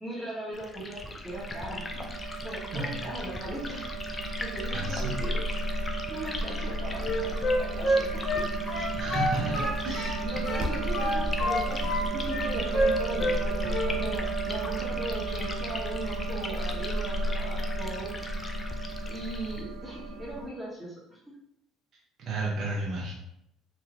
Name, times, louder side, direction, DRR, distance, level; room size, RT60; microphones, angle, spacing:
voice 1, 0.0-3.8 4.1-5.5 6.1-9.1 9.4-9.7 10.2-18.1 19.0-21.2, right 1 dB, 15° right, -7 dB, 1.3 m, -39 dB
Liquid, 0.5-19.6, left 2 dB, 25° left, 0.4 m, -40 dB
sound 1, 1.3-20.5, right 2 dB, 80° right, 0.5 m, -33 dB
voice 2, 4.7-5.1 9.0-10.2 22.2-23.1, right 2 dB, 55° right, -4 dB, 0.8 m, -32 dB
Wind instrument woodwind instrument, 7.0-10.2 10.5-12.0 12.3-13.4 13.7-13.9, equal, 40° left, 1.0 m, -28 dB
3.1 x 2.7 x 2.5 m, 0.78 s
supercardioid pair, 75°, 0 cm